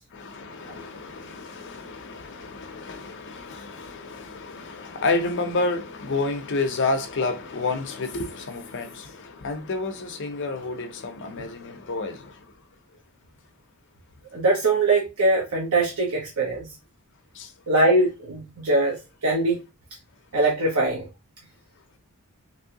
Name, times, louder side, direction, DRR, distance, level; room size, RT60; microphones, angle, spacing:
voice 1, 0.1-12.2, left 3 dB, 55° left, 0.6 m, -30 dB
voice 2, 14.3-16.7 17.7-19.0 19.2-19.6 20.3-21.0, right 2 dB, 85° right, 0.9 m, -22 dB
2.9 x 2.6 x 2.8 m
head